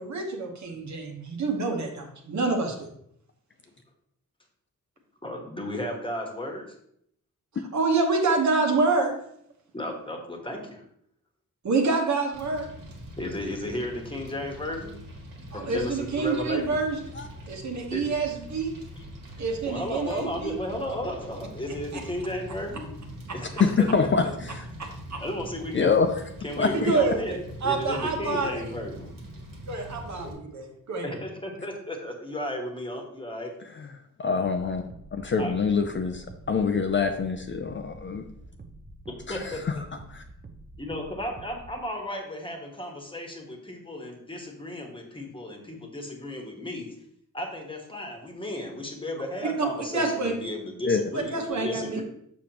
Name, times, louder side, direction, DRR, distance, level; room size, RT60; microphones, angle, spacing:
voice 1, 0.0-2.8 7.7-9.2 11.6-12.7 15.5-17.0 17.5-18.8 19.4-20.5 21.9-22.0 24.8-25.2 26.7-28.6 29.7-31.1 49.6-49.7 49.9-50.3 51.1-52.0, right 3 dB, 55° right, 2 dB, 1.2 m, -27 dB
voice 2, 5.2-6.7 9.7-10.8 13.2-14.9 15.5-16.6 17.9-18.0 19.7-22.8 23.3-23.9 24.2-24.3 25.2-25.9 26.4-27.3 27.6-29.2 30.2-30.3 31.0-33.5 35.4-35.6 39.1-39.8 40.8-46.9 47.3-52.0, left 1 dB, 15° left, 1 dB, 1.2 m, -34 dB
Fire, 12.3-30.3, equal, 85° right, 1.9 m, -43 dB
voice 3, 23.6-24.6 25.7-26.1 26.6-26.9 33.8-33.9 34.2-34.8 35.1-38.2 39.3-39.8 40.1-40.2 50.9-51.0, left 5 dB, 35° left, 5 dB, 0.5 m, -25 dB
sound 1, 34.4-41.8, right 2 dB, 30° right, 0.6 m, -47 dB
7.0 x 6.3 x 2.9 m, 0.71 s
wide cardioid pair, 155°, 33 cm